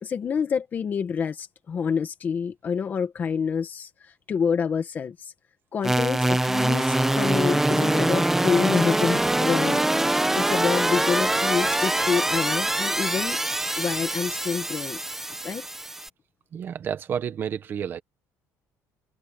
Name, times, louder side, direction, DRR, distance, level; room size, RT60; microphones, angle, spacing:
voice 1, 0.0-5.3 5.7-10.1 10.4-13.4 13.8-15.0 15.4-15.6, left 6 dB, 30° left, 1.4 m, -27 dB
sound 1, 5.8-16.1, right 1 dB, 5° right, 1.5 m, -24 dB
voice 2, 16.5-18.0, right 8 dB, 35° right, 1.5 m, -30 dB
cardioid pair, 165°, 6 cm